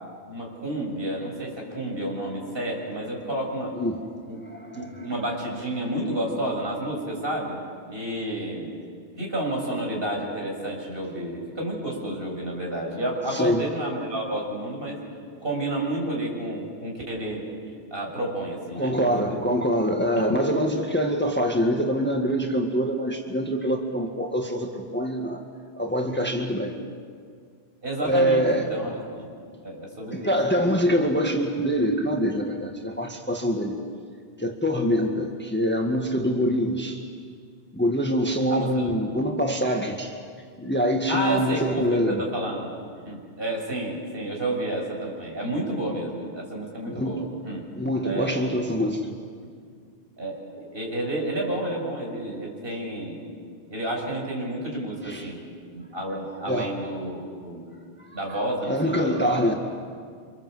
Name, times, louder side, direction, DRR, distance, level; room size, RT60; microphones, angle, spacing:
voice 1, 0.2-3.7 4.3-4.4 4.7-7.6 7.9-8.7 9.2-15.0 15.4-17.4 17.9-19.4 20.2-20.3 27.8-29.3 29.6-30.3 30.6-30.8 38.5-38.7 41.1-42.8 43.0-47.7 48.0-48.4 50.2-53.2 53.7-55.4 55.7-57.6 58.1-59.6, right 1 dB, 55° right, -1 dB, 6.8 m, -30 dB
voice 2, 3.7-4.1 4.4-4.9 13.3-13.6 18.8-25.4 25.8-26.8 28.0-28.7 30.1-33.8 34.4-37.0 37.7-40.2 40.6-42.2 46.8-47.2 47.7-49.1 55.0-55.3 56.5-56.8 58.3-59.5, equal, 10° left, 2 dB, 1.7 m, -25 dB
29.0 x 26.0 x 7.9 m, 2.1 s
omnidirectional pair, 1.2 m